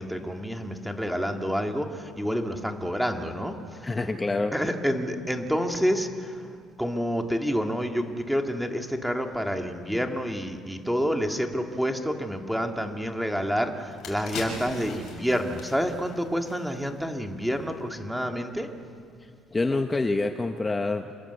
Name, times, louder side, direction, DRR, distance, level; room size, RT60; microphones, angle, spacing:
voice 1, 0.0-3.9 4.5-6.5 6.8-18.7, equal, ahead, 4 dB, 2.0 m, -28 dB
voice 2, 3.8-4.5 19.2-21.2, left 3 dB, 15° left, 7 dB, 0.9 m, -27 dB
sound 1, 13.3-13.4 13.8-17.1 17.4-17.6, left 4 dB, 60° left, 6.6 m, -40 dB
27.5 x 21.5 x 8.1 m, 2.2 s
cardioid pair, 135°, 0 cm